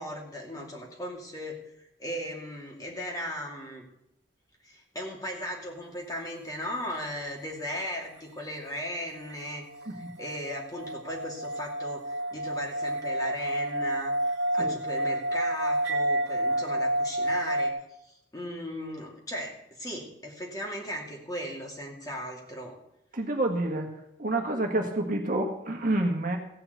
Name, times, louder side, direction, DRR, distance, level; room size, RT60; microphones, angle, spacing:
voice 1, 0.0-1.6 2.0-3.8 4.6-9.6 9.9-14.1 14.5-17.7 18.0-22.8, equal, 20° left, -1 dB, 2.5 m, -37 dB
sound 1, 9.3-17.7, right 1 dB, 80° right, 1.0 m, -29 dB
voice 2, 23.1-23.9 24.2-26.4, right 2 dB, 45° right, 2 dB, 1.6 m, -28 dB
15.5 x 5.9 x 8.0 m, 0.81 s
head